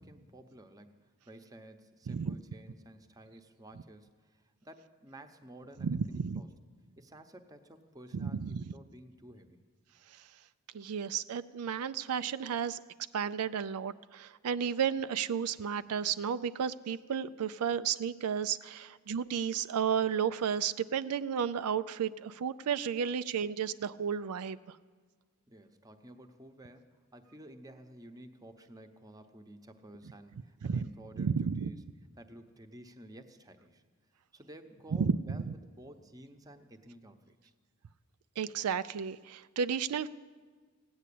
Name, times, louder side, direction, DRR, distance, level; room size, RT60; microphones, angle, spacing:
voice 1, 0.0-6.5 7.0-9.6 25.5-31.8 32.2-33.8 34.3-35.5 35.8-37.5, right 1 dB, 15° right, 6 dB, 0.8 m, -53 dB
voice 2, 5.8-6.4 8.1-8.7 10.1-10.2 10.7-12.8 13.1-24.6 30.6-30.9 31.2-31.7 35.0-35.4 38.4-40.1, right 7 dB, 85° right, 13 dB, 0.4 m, -32 dB
17.0 x 9.6 x 8.5 m, 1.5 s
head